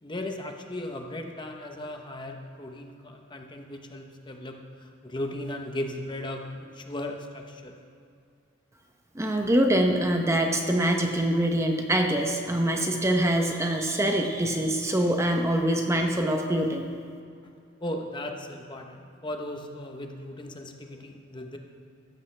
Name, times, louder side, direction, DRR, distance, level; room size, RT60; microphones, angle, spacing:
voice 1, 0.0-7.7 17.8-21.6, left 1 dB, 25° left, 3 dB, 0.9 m, -37 dB
voice 2, 9.1-16.9, right 1 dB, 15° right, 3 dB, 0.8 m, -24 dB
15.5 x 13.5 x 3.3 m, 2.4 s
head